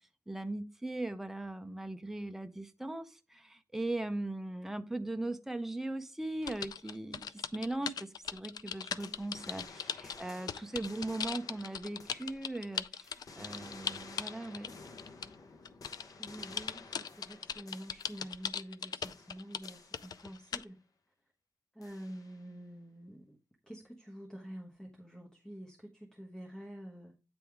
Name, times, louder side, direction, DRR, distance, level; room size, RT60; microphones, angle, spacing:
voice 1, 0.3-14.7, right 2 dB, 5° right, 0.6 m, -39 dB
sound 1, 6.4-15.3 15.7-20.6, left 7 dB, 85° left, 0.3 m, -38 dB
sound 2, 9.0-12.7 13.0-18.8 19.0-20.7 21.8-22.5, left 4 dB, 65° left, 1.0 m, -53 dB
voice 2, 16.2-20.8 21.7-23.4 23.7-27.1, equal, 10° left, 1.1 m, -48 dB
8.9 x 3.5 x 4.6 m
wide cardioid pair, 100°, 7 cm